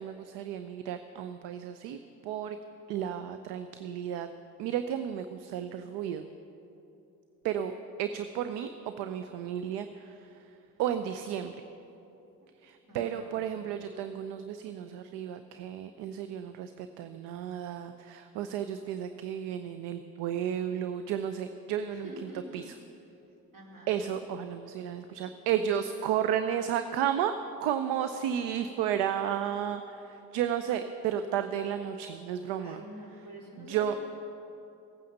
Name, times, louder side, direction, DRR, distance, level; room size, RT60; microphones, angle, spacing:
voice 1, 0.0-2.6 2.9-4.3 4.6-6.3 7.4-7.7 8.0-8.7 9.0-10.1 10.8-11.5 12.6-22.1 22.5-22.6 23.9-27.3 27.6-32.8 33.6-34.0, right 9 dB, 65° right, 9 dB, 0.7 m, -33 dB
voice 2, 12.8-13.5 21.9-22.6 23.5-24.1 32.6-34.0, equal, 50° right, -3 dB, 4.0 m, -47 dB
16.0 x 9.1 x 6.5 m, 3.0 s
hypercardioid pair, 50°, 44 cm